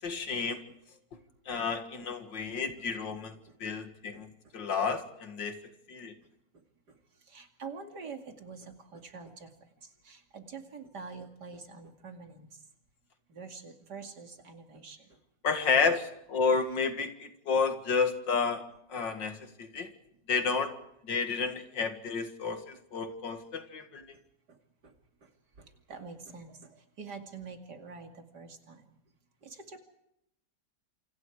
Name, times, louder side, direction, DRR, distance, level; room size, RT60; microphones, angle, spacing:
voice 1, 0.0-0.6 1.5-5.6 5.9-6.1 15.4-18.6 18.9-19.9 20.3-20.7 21.0-24.0, left 5 dB, 80° left, 7 dB, 2.6 m, -31 dB
voice 2, 7.2-9.5 9.8-12.6 13.3-15.2 24.5-24.6 24.8-24.9 25.2-25.3 25.6-28.9 29.4-29.8, right 5 dB, 65° right, 4 dB, 3.0 m, -46 dB
27.5 x 26.5 x 4.9 m, 0.78 s
omnidirectional pair, 1.9 m